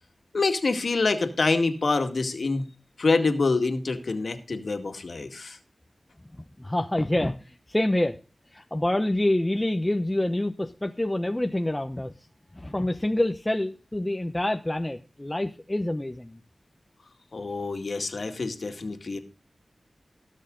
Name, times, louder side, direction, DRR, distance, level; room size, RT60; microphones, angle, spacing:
voice 1, 0.3-2.6 3.0-5.6 17.3-19.2, left 3 dB, 70° left, 6 dB, 2.0 m, -26 dB
voice 2, 6.4-8.2 8.5-12.1 12.5-16.4, left 1 dB, 20° left, 6 dB, 0.9 m, -27 dB
18.5 x 6.5 x 3.9 m, 0.34 s
cardioid pair, 50°, 0 cm